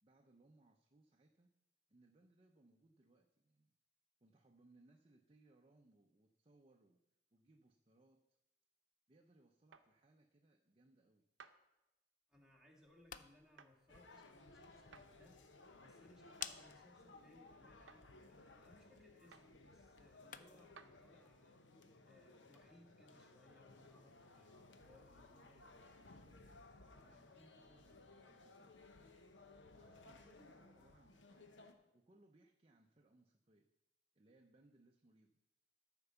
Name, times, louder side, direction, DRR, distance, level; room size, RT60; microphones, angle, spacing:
voice 1, 0.0-1.5 1.9-3.7 4.2-7.0 7.3-8.4 9.1-11.3 25.4-25.7 27.0-29.1 29.7-31.5 31.9-33.7 34.1-35.4, right 2 dB, 30° right, 3 dB, 0.6 m, -70 dB
sound 1, 9.7-9.9 11.4-11.6 13.6-13.7 14.9-15.1 16.4-16.6 17.9-18.0 19.3-19.5 20.8-20.9, right 6 dB, 85° right, 0.7 m, -59 dB
voice 2, 12.3-15.4 15.8-21.6 22.0-25.8 26.8-27.3, left 1 dB, 5° right, -2 dB, 1.7 m, -68 dB
sound 2, 12.8-20.8, left 9 dB, 45° left, 0.4 m, -56 dB
sound 3, 13.9-31.7, left 2 dB, 80° left, 1.0 m, -61 dB
13.5 x 4.5 x 6.9 m, 0.96 s
head